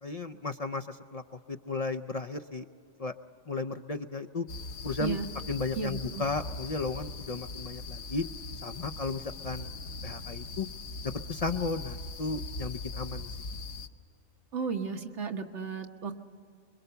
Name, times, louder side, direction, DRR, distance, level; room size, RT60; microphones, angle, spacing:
voice 1, 0.0-1.2 1.5-2.7 3.0-3.1 3.5-4.5 4.8-5.2 5.5-8.2 8.6-9.7 10.0-10.7 11.3-13.3, left 3 dB, 45° left, 6 dB, 0.6 m, -34 dB
sound 1, 4.5-13.9, left 3 dB, 70° left, 1.1 m, -40 dB
voice 2, 5.7-6.2 14.5-16.2, right 5 dB, 80° right, 4 dB, 1.6 m, -34 dB
25.5 x 23.0 x 6.9 m, 2.4 s
omnidirectional pair, 1.2 m